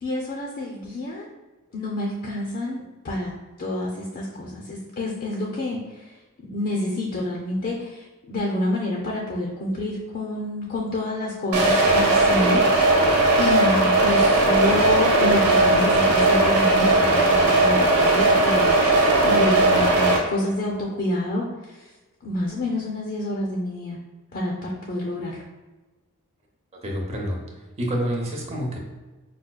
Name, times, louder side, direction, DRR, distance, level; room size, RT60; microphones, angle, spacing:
voice 1, 0.0-1.3 1.7-3.3 3.6-6.2 6.4-21.9 22.2-24.0 24.3-25.4, left 1 dB, 45° left, -1 dB, 0.5 m, -28 dB
sound 1, 11.5-20.2, right 2 dB, 80° right, 0.8 m, -18 dB
voice 2, 26.8-27.4 27.8-28.8, equal, 30° right, -1 dB, 0.7 m, -27 dB
4.9 x 2.2 x 2.3 m, 1.2 s
head